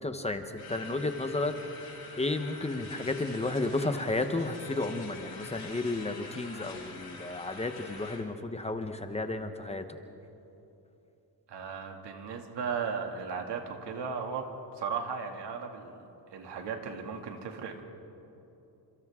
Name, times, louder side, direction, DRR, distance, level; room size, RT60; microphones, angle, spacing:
voice 1, 0.0-1.5 2.2-9.8, left 2 dB, 15° left, 7 dB, 0.9 m, -32 dB
sound 1, 0.6-8.2, left 4 dB, 65° left, 4.7 m, -46 dB
voice 2, 11.5-14.5 14.8-15.9 16.3-17.8, right 6 dB, 90° right, 3 dB, 2.4 m, -36 dB
29.5 x 27.0 x 3.7 m, 2.9 s
wide cardioid pair, 175°, 40 cm